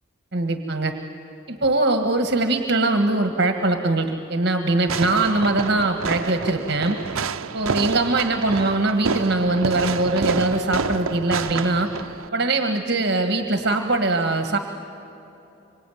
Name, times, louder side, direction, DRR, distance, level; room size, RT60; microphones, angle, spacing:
voice 1, 0.3-0.9 1.5-7.0 7.5-11.9 12.3-14.6, right 2 dB, 50° right, 5 dB, 1.5 m, -22 dB
Fireworks, 4.9-12.3, right 5 dB, 90° right, 0.7 m, -28 dB
26.0 x 24.5 x 9.3 m, 2.9 s
head